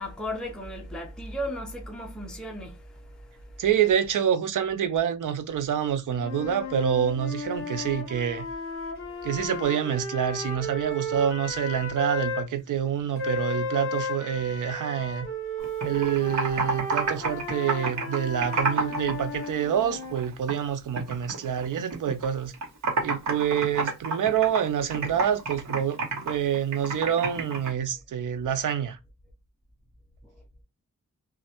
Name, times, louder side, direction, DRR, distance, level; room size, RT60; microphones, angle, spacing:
voice 1, 0.0-3.6 9.1-9.3, equal, ahead, 0.6 m, -36 dB
voice 2, 3.6-8.5 9.2-15.3 15.8-22.5 23.0-26.0 26.3-29.0, right 9 dB, 85° right, 0.5 m, -27 dB
sound 1, 6.2-12.5 13.2-20.3, left 1 dB, 40° left, 1.0 m, -34 dB
Computer keyboard, 15.6-19.1 19.4-20.6 21.0-22.3 22.5-27.7, right 3 dB, 65° right, 1.0 m, -29 dB
3.0 x 2.3 x 2.8 m
wide cardioid pair, 140°, 30 cm